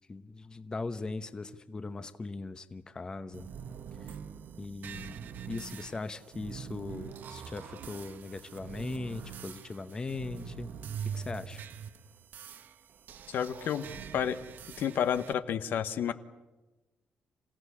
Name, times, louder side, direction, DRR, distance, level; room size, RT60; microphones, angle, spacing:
voice 1, 0.1-3.5 4.0-4.1 4.6-10.7 11.0-11.6, left 3 dB, 20° left, 11 dB, 0.9 m, -39 dB
sound 1, 3.3-15.3, right 7 dB, 65° right, 1.2 m, -44 dB
voice 2, 13.3-13.9 14.1-14.4 14.8-16.1, left 8 dB, 70° left, 11 dB, 1.2 m, -30 dB
27.5 x 16.0 x 9.9 m, 1.1 s
cardioid pair, 150°, 4 cm